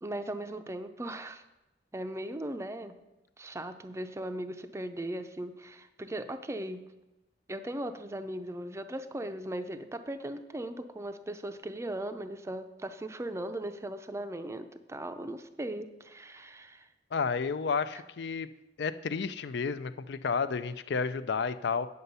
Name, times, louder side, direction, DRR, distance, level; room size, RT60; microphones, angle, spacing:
voice 1, 0.0-1.4 1.9-3.0 3.4-6.9 7.5-16.9, right 1 dB, 15° right, 8 dB, 0.5 m, -38 dB
voice 2, 17.1-18.5 18.8-21.9, left 5 dB, 65° left, 13 dB, 0.5 m, -31 dB
9.5 x 6.8 x 5.5 m, 0.98 s
head